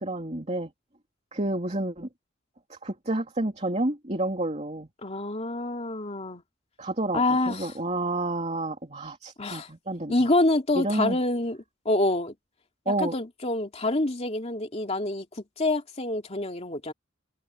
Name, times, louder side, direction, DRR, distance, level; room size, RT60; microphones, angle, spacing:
voice 1, 0.0-0.7 1.3-2.1 2.7-4.9 6.8-10.3 10.7-11.2 12.9-13.1, right 2 dB, 30° right, 2.9 m, -30 dB
voice 2, 5.0-6.4 7.1-7.7 9.4-9.7 10.1-11.6 11.8-12.3 13.0-16.9, left 2 dB, 30° left, 2.7 m, -26 dB
open air
head